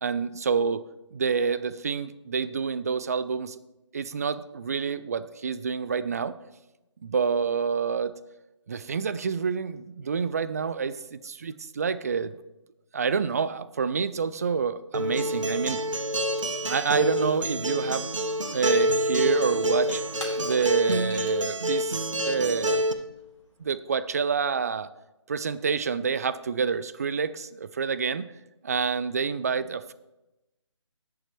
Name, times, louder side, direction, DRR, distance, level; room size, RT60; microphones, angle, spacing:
voice 1, 0.0-0.8 1.1-3.6 3.9-6.3 7.0-8.1 8.7-12.3 12.9-15.8 16.6-18.1 18.5-20.0 20.4-22.8 23.6-24.9 25.3-28.3 28.6-29.9, right 6 dB, 30° right, 14 dB, 0.4 m, -28 dB
Acoustic guitar, 14.9-22.9, equal, 75° right, 1.0 m, -27 dB
Shatter / Crushing, 19.7-24.0, left 1 dB, 90° left, 3.8 m, -47 dB
20.0 x 6.9 x 3.1 m, 0.98 s
figure-of-eight pair, 150°, 16 cm